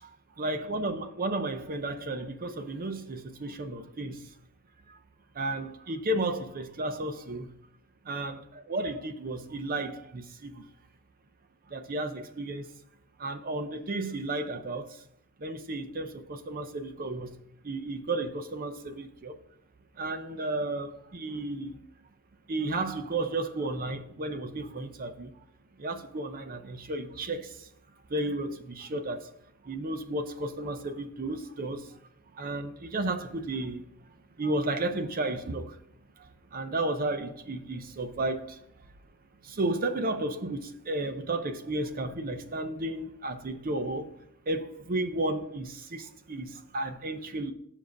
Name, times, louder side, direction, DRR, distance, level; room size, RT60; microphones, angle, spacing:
voice 1, 0.4-4.2 5.4-7.5 8.1-8.4 8.7-10.6 11.7-12.6 13.2-14.9 15.4-17.3 17.6-19.3 20.0-21.8 22.5-25.3 25.8-27.5 28.1-29.2 29.7-31.8 32.4-33.8 34.4-35.7 36.5-38.5 39.5-44.1 44.5-47.5, right 2 dB, 40° right, 0.6 m, -33 dB
7.4 x 5.3 x 5.1 m
head